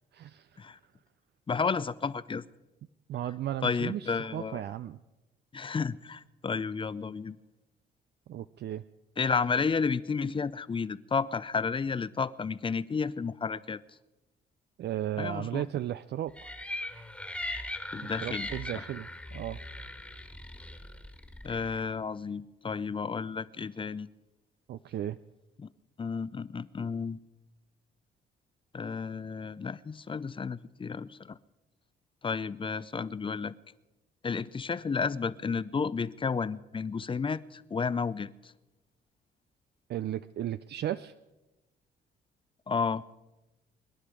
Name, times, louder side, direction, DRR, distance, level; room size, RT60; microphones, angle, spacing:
voice 1, 0.1-0.8 3.1-5.0 8.3-8.8 14.8-16.5 18.0-19.6 24.7-25.2 39.9-41.1, right 11 dB, 60° right, 0.4 m, -35 dB
voice 2, 1.5-2.4 3.6-4.6 5.5-7.4 9.2-13.8 15.2-15.6 17.9-18.5 18.7-18.8 21.4-24.1 25.6-25.7 26.0-27.2 28.7-31.4 32.2-33.5 34.2-38.5 42.7-43.0, left 5 dB, 25° left, 0.5 m, -32 dB
sound 1, 16.4-21.8, left 1 dB, 5° left, 1.6 m, -39 dB
24.0 x 10.5 x 4.9 m
cardioid pair, 90°, 20 cm